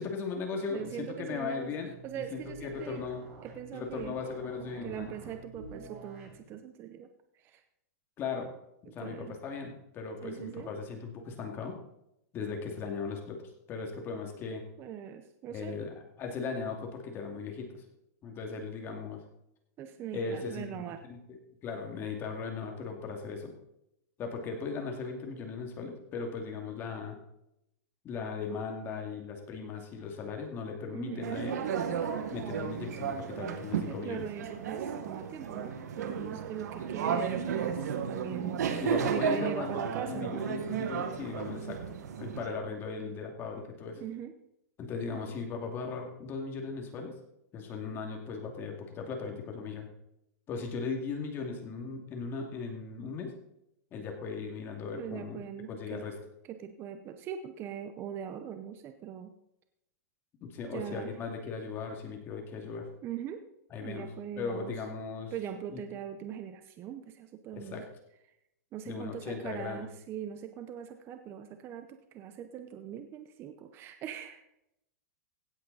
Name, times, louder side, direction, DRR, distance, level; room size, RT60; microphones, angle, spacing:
voice 1, 0.0-3.2 3.7-5.1 8.2-8.5 8.8-11.8 12.3-13.4 13.7-14.6 15.5-17.8 18.2-19.2 20.1-23.5 24.2-27.2 28.0-31.6 32.3-34.3 38.8-41.8 42.2-44.0 44.8-47.1 47.5-49.9 50.5-53.3 53.9-55.4 55.7-56.2 60.4-62.9 63.7-64.1 64.4-65.3 65.7-65.8 67.5-67.8 68.8-69.9, left 5 dB, 25° left, 2 dB, 2.2 m, -38 dB
voice 2, 0.7-1.7 2.0-3.0 3.4-4.2 4.8-7.1 7.3-7.6 8.8-9.3 10.2-10.7 14.8-15.7 19.8-21.0 30.9-31.5 33.9-38.6 39.1-40.4 44.0-44.3 45.1-45.3 54.9-56.0 56.5-59.3 60.7-61.1 63.0-63.4 63.8-64.7 65.3-67.8 68.7-74.4, right 9 dB, 25° right, 8 dB, 0.7 m, -41 dB
sound 1, 0.7-6.4, right 3 dB, 55° right, 5.3 m, -49 dB
sound 2, 31.2-42.5, right 7 dB, 75° right, 1.5 m, -34 dB
16.0 x 8.2 x 4.0 m, 0.82 s
supercardioid pair, 150°, 9 cm